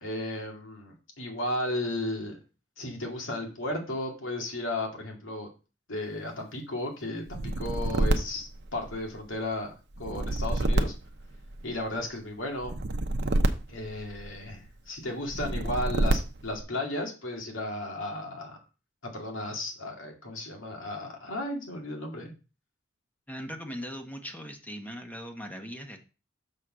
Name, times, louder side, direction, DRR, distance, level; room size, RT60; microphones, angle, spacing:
voice 1, 0.0-2.4 2.8-5.5 5.9-9.7 10.0-10.9 11.6-12.8 13.7-18.6 19.1-22.3, left 1 dB, 85° left, 1 dB, 2.2 m, -34 dB
sound 1, 7.3-9.3 9.9-11.9 12.6-14.5 15.3-16.6, right 1 dB, 60° right, 0.9 m, -28 dB
voice 2, 23.3-26.0, equal, 10° left, 4 dB, 1.2 m, -39 dB
6.5 x 4.1 x 6.2 m, 0.32 s
head